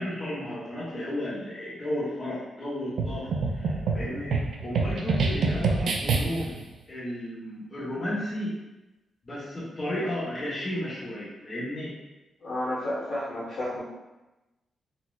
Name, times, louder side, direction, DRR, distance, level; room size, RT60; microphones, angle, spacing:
voice 1, 0.0-8.6 9.2-11.9, left 1 dB, 30° left, -8 dB, 0.9 m, -33 dB
sound 1, 3.0-6.6, right 4 dB, 70° right, 0.3 m, -27 dB
voice 2, 12.4-13.8, left 1 dB, 70° left, -9 dB, 1.2 m, -31 dB
4.0 x 2.1 x 2.3 m, 1.0 s
wide cardioid pair, 160°, 0 cm